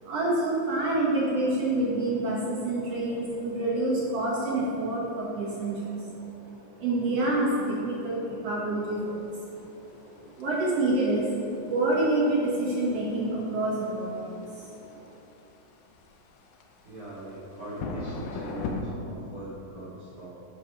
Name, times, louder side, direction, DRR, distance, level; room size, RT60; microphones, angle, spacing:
voice 1, 0.0-9.3 9.7-9.9 10.2-11.3 11.7-15.1, right 2 dB, 60° right, -5 dB, 1.7 m, -28 dB
sound 1, 9.0-18.8, left 4 dB, 85° left, 2.7 m, -41 dB
voice 2, 16.8-20.3, right 2 dB, 30° right, -10 dB, 2.1 m, -41 dB
10.5 x 4.9 x 5.6 m, 2.8 s
omnidirectional pair, 4.2 m